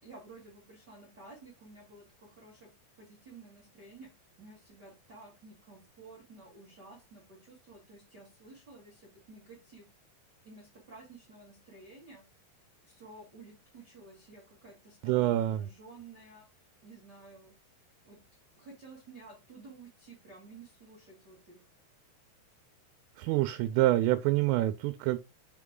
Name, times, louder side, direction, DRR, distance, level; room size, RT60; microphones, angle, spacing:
voice 1, 0.0-2.7 3.0-4.1 4.4-9.9 10.4-12.2 12.8-16.5 16.8-17.5 18.0-18.2 18.5-21.6, right 3 dB, 65° right, 1.0 m, -52 dB
voice 2, 15.0-15.7 23.2-25.2, right 15 dB, 90° right, 3.1 m, -26 dB
6.5 x 4.6 x 3.7 m
omnidirectional pair, 5.6 m